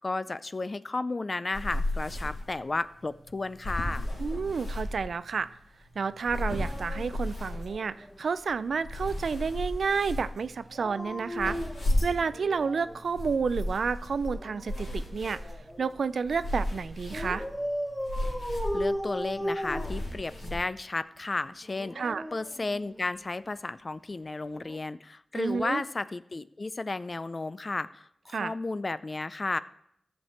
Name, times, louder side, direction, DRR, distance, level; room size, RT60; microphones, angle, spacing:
voice 1, 0.0-4.1 18.7-21.9 22.3-29.6, left 3 dB, 40° left, 15 dB, 0.4 m, -33 dB
sound 1, 1.5-20.6, left 1 dB, 75° left, 3.8 m, -35 dB
voice 2, 4.2-5.5 6.0-11.6 12.0-15.4 15.8-17.5 22.0-22.2 25.3-25.8 28.3-28.5, right 5 dB, 75° right, 15 dB, 0.4 m, -30 dB
Dog, 6.3-8.2 10.6-13.0 14.3-16.0 17.1-20.7 21.6-23.3 24.5-24.8, equal, 5° left, 1.0 m, -37 dB
14.0 x 6.5 x 4.4 m, 0.74 s
cardioid pair, 50°, 0 cm